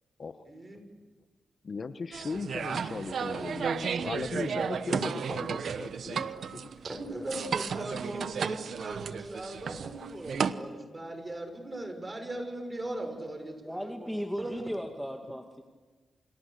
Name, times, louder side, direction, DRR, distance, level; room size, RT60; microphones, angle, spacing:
voice 1, 0.5-0.8 6.8-13.9 14.4-14.5, right 1 dB, 30° right, 6 dB, 6.8 m, -39 dB
voice 2, 1.6-6.7, left 4 dB, 50° left, 10 dB, 1.3 m, -38 dB
sound 1, 2.1-10.5, right 6 dB, 70° right, 1.0 m, -33 dB
voice 3, 13.6-15.6, equal, ahead, 3 dB, 2.2 m, -36 dB
29.0 x 27.5 x 6.8 m, 1.4 s
cardioid pair, 70°, 0 cm